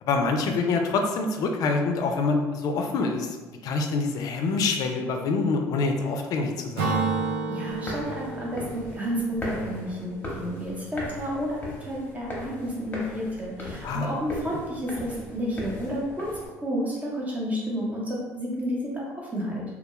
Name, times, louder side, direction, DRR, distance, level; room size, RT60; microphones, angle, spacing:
voice 1, 0.0-3.4 3.6-7.0 13.8-14.1, left 3 dB, 60° left, 4 dB, 0.4 m, -26 dB
Acoustic guitar / Strum, 6.8-10.4, right 4 dB, 90° right, 0.5 m, -31 dB
voice 2, 7.5-16.3 16.6-19.6, equal, 20° right, -4 dB, 0.9 m, -31 dB
sound 1, 7.7-16.5, equal, 25° left, 0.9 m, -38 dB
2.3 x 2.1 x 3.0 m, 1.2 s
supercardioid pair, 80°, 7 cm